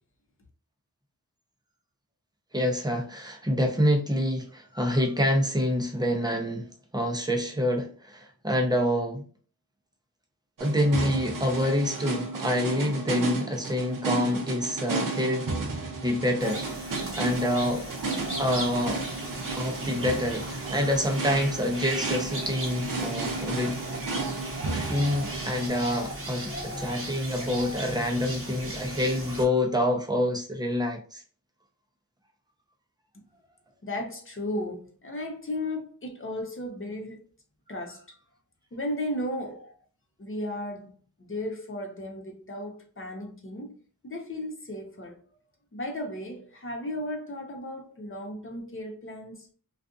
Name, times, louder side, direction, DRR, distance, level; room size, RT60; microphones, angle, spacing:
voice 1, 2.5-9.2 10.6-16.6 16.9-17.8 18.4-19.0 19.5-23.8 24.7-31.2, left 1 dB, 10° right, 0.7 m, -27 dB
sound 1, 10.6-25.7, right 3 dB, 60° right, 0.7 m, -33 dB
sound 2, 16.4-29.4, right 1 dB, 35° right, 0.9 m, -36 dB
voice 2, 33.8-37.2 37.7-38.0 38.7-39.7 40.2-40.9 41.2-43.8 44.0-45.2 45.7-49.5, left 1 dB, 35° left, 0.8 m, -35 dB
2.5 x 2.5 x 2.4 m
wide cardioid pair, 70°, 36 cm